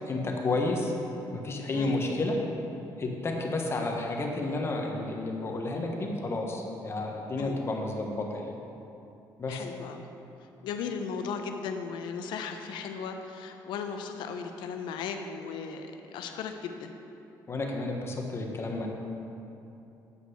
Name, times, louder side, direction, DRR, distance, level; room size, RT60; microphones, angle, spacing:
voice 1, 0.1-0.9 1.3-2.4 3.0-8.5 9.4-9.6 17.5-18.9, left 2 dB, 35° left, 1 dB, 1.2 m, -31 dB
voice 2, 9.5-10.0 10.6-16.9, left 6 dB, 85° left, 5 dB, 0.7 m, -36 dB
8.3 x 5.2 x 6.4 m, 2.8 s
cardioid pair, 110°, 8 cm